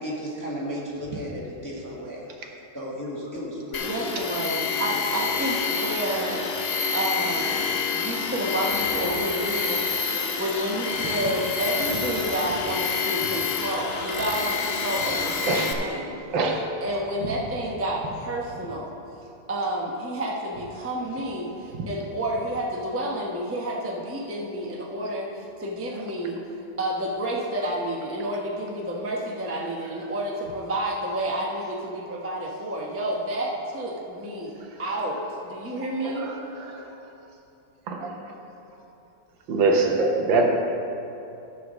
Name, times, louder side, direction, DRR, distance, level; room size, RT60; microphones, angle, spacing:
voice 1, 0.0-2.2 2.7-4.5, equal, 10° left, -4 dB, 1.1 m, -34 dB
Tools, 3.7-15.7, left 5 dB, 60° left, 0.6 m, -28 dB
voice 2, 3.8-6.5 6.9-7.6 7.9-16.2 16.8-18.9 19.5-26.4 26.8-34.5 34.8-36.3, right 1 dB, 10° right, -3 dB, 0.7 m, -30 dB
voice 3, 36.0-36.8 37.9-38.1 39.5-40.5, right 3 dB, 75° right, 2 dB, 1.7 m, -23 dB
13.0 x 4.7 x 6.3 m, 2.8 s
omnidirectional pair, 2.2 m